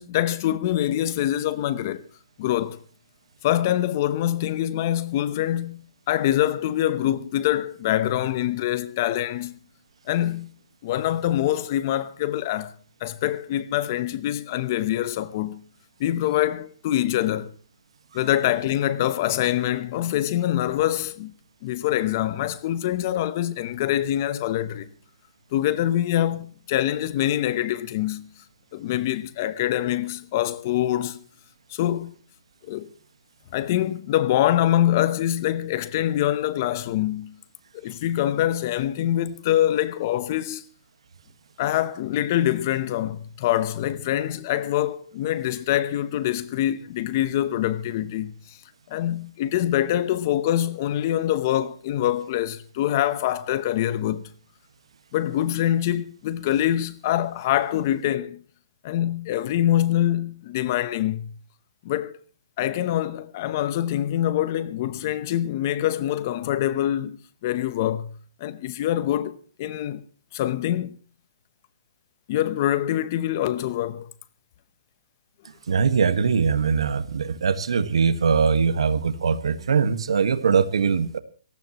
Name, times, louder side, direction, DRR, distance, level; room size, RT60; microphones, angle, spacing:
voice 1, 0.0-2.1 2.4-2.8 3.4-9.6 10.1-10.5 10.8-12.7 13.0-15.6 16.0-17.5 18.1-21.3 21.6-24.9 25.5-28.3 28.7-31.2 31.7-32.1 32.7-32.9 33.5-37.4 37.7-40.6 41.6-48.6 48.9-54.3 55.1-58.4 58.8-61.3 61.8-62.2 62.6-68.1 68.4-70.0 70.3-71.0 72.3-74.1, left 12 dB, 30° left, 0.8 m, -25 dB
voice 2, 75.7-81.2, right 6 dB, 75° right, 1.5 m, -21 dB
22.0 x 18.0 x 3.0 m
hypercardioid pair, 170°, 3 cm